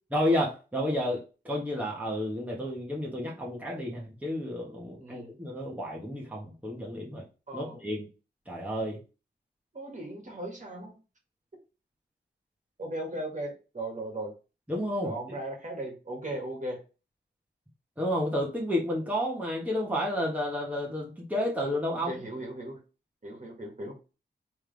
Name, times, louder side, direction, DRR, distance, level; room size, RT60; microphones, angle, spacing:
voice 1, 0.1-7.2 7.5-8.1 8.5-9.0 14.7-15.4 18.0-22.3, left 1 dB, 10° right, -3 dB, 1.4 m, -31 dB
voice 2, 5.0-5.3 7.5-7.8 9.7-10.9 12.8-14.3 15.0-16.8 22.0-22.8 23.2-23.9, right 1 dB, 40° right, 0 dB, 1.8 m, -37 dB
3.5 x 3.3 x 3.4 m, 0.32 s
cardioid pair, 50°, 19 cm